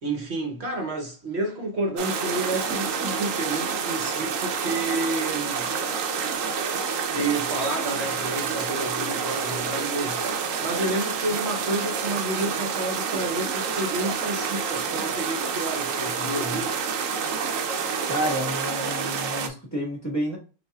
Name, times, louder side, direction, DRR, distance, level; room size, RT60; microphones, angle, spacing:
voice 1, 0.0-5.7 7.1-16.8, right 2 dB, 60° right, 1.1 m, -30 dB
sound 1, 2.0-19.5, right 6 dB, 85° right, 1.0 m, -28 dB
voice 2, 18.0-20.4, equal, 15° left, 1.5 m, -30 dB
5.5 x 2.6 x 2.3 m
omnidirectional pair, 1.3 m